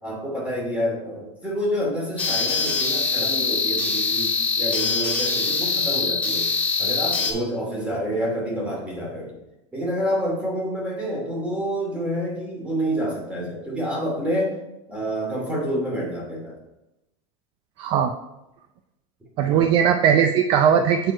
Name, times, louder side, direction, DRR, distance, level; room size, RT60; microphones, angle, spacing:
voice 1, 0.0-6.5 6.8-9.3 9.7-14.6 14.9-16.6 19.4-19.7, equal, 10° right, -3 dB, 2.5 m, -28 dB
sound 1, 2.2-7.3, left 4 dB, 10° left, 1.8 m, -23 dB
voice 2, 17.8-18.1 19.4-21.1, right 8 dB, 35° right, 7 dB, 0.4 m, -19 dB
7.9 x 4.5 x 4.5 m, 0.94 s
supercardioid pair, 145°, 15 cm